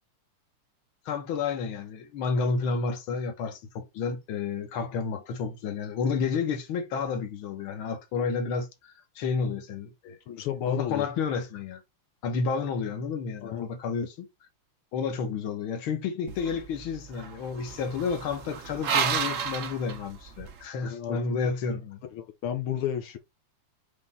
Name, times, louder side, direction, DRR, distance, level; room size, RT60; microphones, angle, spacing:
voice 1, 1.1-10.2 10.7-11.8 12.2-14.3 14.9-22.0, left 5 dB, 70° left, 1.9 m, -31 dB
voice 2, 10.3-11.1 13.4-13.7 20.8-21.2 22.1-23.2, left 10 dB, 85° left, 1.7 m, -31 dB
sound 1, 16.3-20.6, right 7 dB, 55° right, 0.8 m, -32 dB
5.7 x 3.3 x 5.4 m
omnidirectional pair, 2.4 m